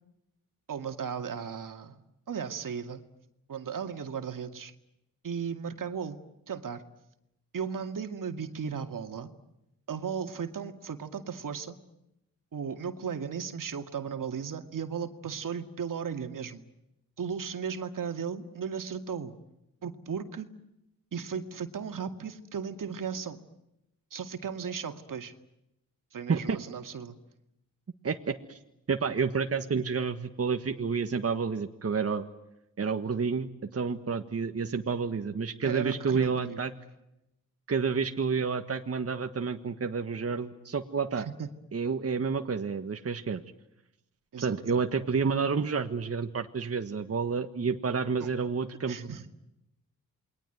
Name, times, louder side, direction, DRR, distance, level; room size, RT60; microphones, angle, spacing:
voice 1, 0.7-2.0 2.3-3.0 3.5-4.7 5.2-6.2 6.5-6.8 7.5-9.3 9.9-11.8 12.5-16.6 17.2-19.3 19.8-20.5 21.1-23.4 24.1-25.3 26.1-27.2 35.6-36.6 41.1-41.5 44.3-44.6 48.2-48.3 48.9-49.3, right 6 dB, 70° right, 7 dB, 2.3 m, -36 dB
voice 2, 28.0-28.6 28.9-32.3 32.8-36.7 37.7-41.3 41.7-43.4 44.4-49.1, right 5 dB, 45° right, 6 dB, 1.6 m, -30 dB
28.5 x 22.0 x 9.3 m, 0.87 s
cardioid pair, 80°, 34 cm